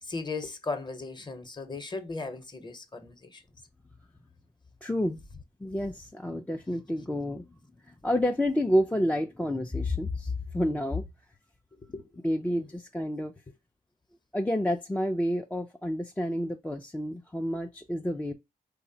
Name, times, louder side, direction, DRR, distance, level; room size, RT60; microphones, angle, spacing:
voice 1, 0.0-3.4 11.8-12.1 12.6-12.7, left 3 dB, 25° left, 0.7 m, -37 dB
voice 2, 4.8-5.2 5.6-7.5 7.9-11.0 12.2-13.3 14.3-18.3, left 1 dB, 10° left, 0.3 m, -29 dB
3.2 x 2.0 x 2.7 m
supercardioid pair, 50°, 17 cm